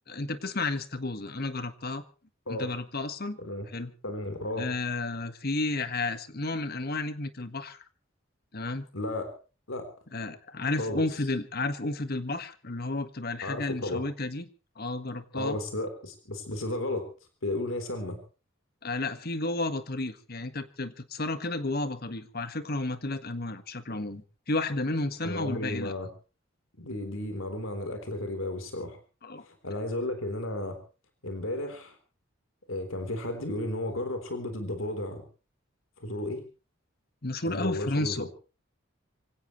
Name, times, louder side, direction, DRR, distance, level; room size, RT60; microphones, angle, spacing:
voice 1, 0.1-2.0 2.5-3.4 3.7-3.9 4.6-7.8 8.5-8.9 10.1-14.5 14.8-15.6 18.8-25.9 29.2-29.5 37.2-38.3, left 2 dB, 50° left, 10 dB, 1.6 m, -32 dB
voice 2, 4.0-4.7 8.9-9.3 9.7-9.9 10.8-11.0 13.4-14.0 15.3-17.1 17.4-18.2 25.2-26.1 26.8-29.0 29.4-30.8 31.2-32.0 32.7-35.2 36.0-36.4 37.4-38.3, left 1 dB, 85° left, 6 dB, 3.7 m, -33 dB
25.0 x 17.0 x 3.1 m, 0.35 s
head